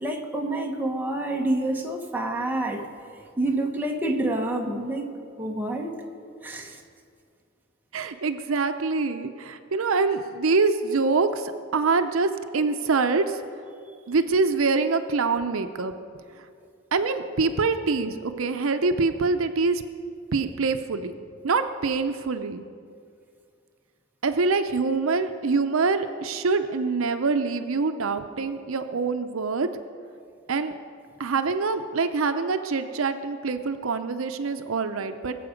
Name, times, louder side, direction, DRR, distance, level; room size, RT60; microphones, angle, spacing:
voice 1, 0.0-2.9 3.4-5.1 5.4-6.0 6.4-6.8, right 1 dB, 10° right, 0 dB, 1.2 m, -28 dB
voice 2, 7.9-13.4 14.1-15.9 16.9-19.8 20.3-21.2 21.4-22.6 24.2-29.7 30.5-30.7 31.2-35.4, right 4 dB, 80° right, 9 dB, 0.6 m, -25 dB
22.0 x 7.7 x 5.2 m, 2.3 s
head